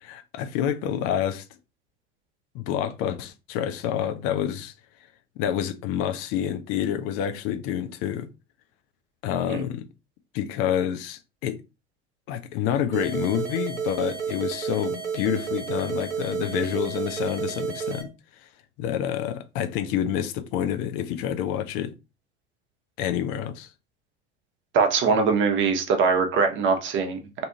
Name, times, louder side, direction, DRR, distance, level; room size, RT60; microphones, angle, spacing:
voice 1, 0.0-1.4 2.5-4.7 5.4-8.3 9.2-9.9 10.3-11.6 12.3-18.5 18.8-21.9 23.0-23.7, left 10 dB, 40° left, 0.4 m, -28 dB
sound 1, 12.9-18.0, right 6 dB, 85° right, 0.6 m, -31 dB
voice 2, 24.7-27.2, right 5 dB, 35° right, 0.7 m, -22 dB
2.6 x 2.4 x 2.7 m
figure-of-eight pair, 70°, 34 cm